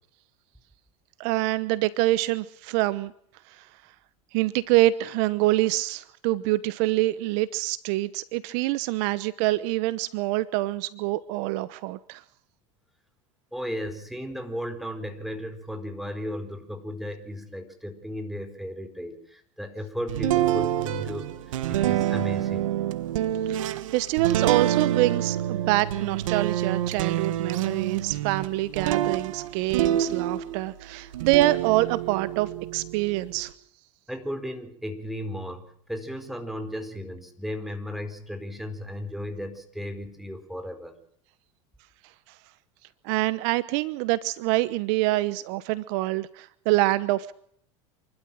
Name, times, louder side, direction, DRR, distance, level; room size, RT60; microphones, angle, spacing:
voice 1, 1.2-3.1 3.5-3.7 4.3-12.2 23.5-33.5 43.0-47.3, right 17 dB, 65° right, 17 dB, 1.0 m, -25 dB
voice 2, 13.5-22.7 34.1-40.9, equal, ahead, 6 dB, 4.5 m, -35 dB
sound 1, 20.1-30.7 31.1-33.5, right 12 dB, 80° right, 1.5 m, -27 dB
28.0 x 12.5 x 7.7 m, 0.67 s
hypercardioid pair, 100°, 17 cm